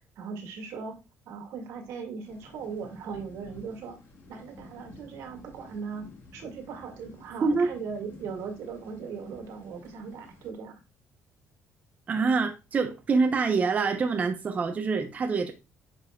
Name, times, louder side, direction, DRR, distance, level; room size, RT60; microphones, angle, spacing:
voice 1, 0.2-1.0 1.3-4.0 4.3-10.7, right 5 dB, 80° right, 1.9 m, -39 dB
sound 1, 2.2-10.5, left 2 dB, 55° left, 1.9 m, -51 dB
voice 2, 12.1-15.5, right 4 dB, 30° right, 0.7 m, -25 dB
9.1 x 5.4 x 2.3 m
cardioid pair, 145°, 5 cm